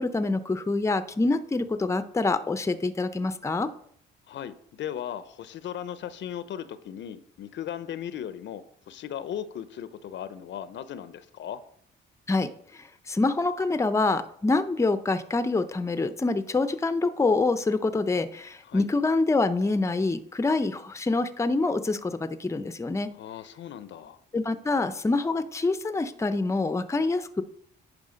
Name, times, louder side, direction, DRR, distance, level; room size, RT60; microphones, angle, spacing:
voice 1, 0.0-3.7 12.3-23.1 24.3-27.4, left 3 dB, 15° left, 12 dB, 0.6 m, -26 dB
voice 2, 4.3-11.6 18.6-18.9 23.2-24.2, left 10 dB, 65° left, 14 dB, 0.7 m, -37 dB
9.5 x 4.8 x 5.1 m, 0.66 s
cardioid pair, 90°, 20 cm